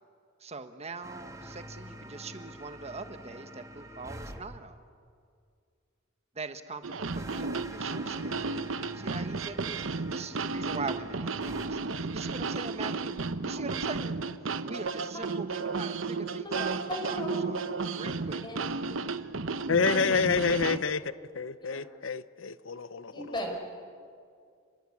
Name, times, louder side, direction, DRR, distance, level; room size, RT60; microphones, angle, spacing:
voice 1, 0.4-4.8 6.3-8.5 8.9-14.1 14.6-17.6 17.9-18.6, right 3 dB, 35° right, 9 dB, 1.4 m, -42 dB
sound 1, 1.0-4.4 7.1-11.7, right 1 dB, 15° right, 1.9 m, -46 dB
sound 2, 6.8-20.8, right 4 dB, 85° right, 0.9 m, -33 dB
voice 2, 16.9-17.4 18.4-18.6 19.9-20.0 21.6-21.8 23.1-23.5, left 1 dB, 25° left, 2 dB, 5.4 m, -36 dB
voice 3, 19.7-21.0 21.3-23.4, left 5 dB, 80° left, 15 dB, 0.8 m, -28 dB
30.0 x 22.0 x 8.6 m, 2.3 s
head